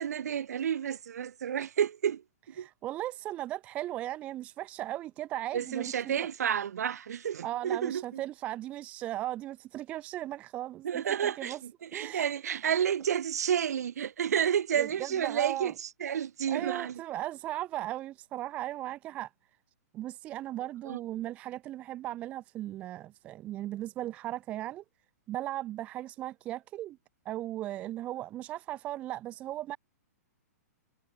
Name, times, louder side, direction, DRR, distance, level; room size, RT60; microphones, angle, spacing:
voice 1, 0.0-2.7 5.5-8.2 10.8-17.0 20.8-21.0, right 8 dB, 70° right, 4.8 m, -31 dB
voice 2, 2.6-5.9 7.4-11.6 11.9-12.3 14.8-15.7 16.5-19.3 19.9-24.8 25.3-27.0 27.3-29.8, right 14 dB, 15° right, 0.5 m, -37 dB
hypercardioid pair, 170°, 9 cm